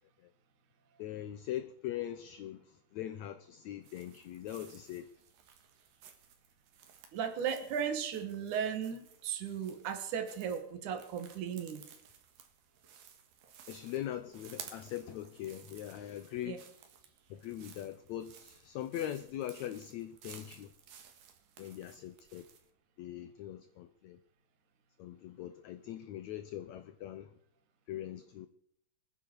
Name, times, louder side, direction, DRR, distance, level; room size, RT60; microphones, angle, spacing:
voice 1, 1.0-5.1 13.7-16.7 17.3-20.7 21.6-22.5 23.0-24.2 25.0-27.3 27.9-28.5, left 12 dB, 75° left, 1.8 m, -41 dB
sound 1, 3.8-22.7, right 8 dB, 85° right, 3.4 m, -56 dB
voice 2, 7.1-11.8 16.4-16.6, right 7 dB, 65° right, 3.2 m, -36 dB
25.5 x 10.0 x 4.7 m
omnidirectional pair, 3.9 m